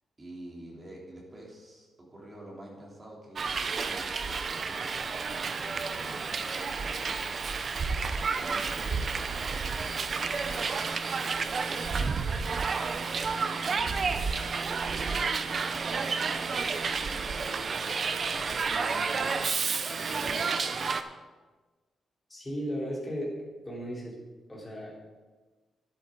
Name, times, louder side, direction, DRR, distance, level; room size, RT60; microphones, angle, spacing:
voice 1, 0.2-7.7 7.9-12.6 12.8-17.6 18.3-20.8, right 1 dB, 20° right, -3 dB, 3.0 m, -48 dB
Hiss, 3.4-21.0, right 5 dB, 40° right, 0.6 m, -31 dB
voice 2, 22.3-24.2 24.5-24.9, equal, 15° left, -4 dB, 3.7 m, -35 dB
12.5 x 11.0 x 3.9 m, 1.3 s
wide cardioid pair, 140°, 0 cm